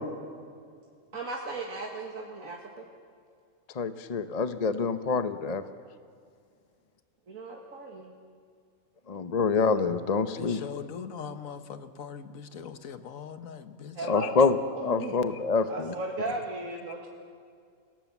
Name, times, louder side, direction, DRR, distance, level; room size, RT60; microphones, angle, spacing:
voice 1, 1.1-2.9 7.3-8.1 11.3-11.4 13.9-14.3 14.7-15.2 15.7-17.1, right 2 dB, 90° right, 0 dB, 2.2 m, -36 dB
voice 2, 3.7-5.6 9.1-10.6 14.1-15.9, left 4 dB, 35° left, 10 dB, 0.8 m, -26 dB
voice 3, 10.4-14.1, left 7 dB, 85° left, 10 dB, 1.5 m, -41 dB
27.5 x 18.0 x 7.2 m, 2.2 s
omnidirectional pair, 1.4 m